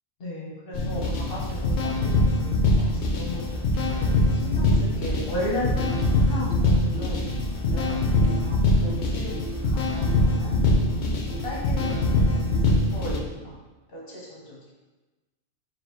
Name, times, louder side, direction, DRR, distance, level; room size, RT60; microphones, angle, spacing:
voice 1, 0.2-3.5 4.0-5.7 6.2-7.2 7.7-9.3 9.6-10.6 11.4-13.6 13.9-14.7, left 1 dB, 55° left, -5 dB, 1.2 m, -36 dB
sound 1, 0.7-13.2, left 2 dB, 70° left, 0.9 m, -23 dB
sound 2, 0.8-2.0 2.8-4.6 5.0-6.5 7.3-9.1, right 2 dB, 35° right, 0.7 m, -39 dB
sound 3, 4.5-12.8, right 2 dB, 75° right, 1.2 m, -40 dB
5.1 x 2.9 x 3.0 m, 1.2 s
omnidirectional pair, 1.2 m